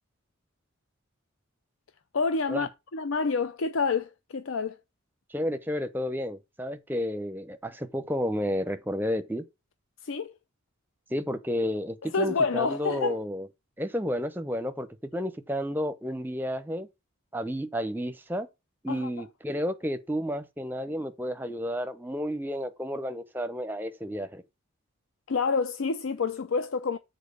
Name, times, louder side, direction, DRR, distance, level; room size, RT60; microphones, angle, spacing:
voice 1, 2.1-4.8 10.0-10.3 12.0-13.2 18.9-19.1 25.3-27.0, left 4 dB, 70° left, 0.5 m, -28 dB
voice 2, 5.3-9.4 11.1-13.5 13.8-14.9 15.1-16.9 17.3-18.5 18.8-24.4, equal, 10° right, 0.7 m, -31 dB
7.4 x 4.3 x 6.6 m
head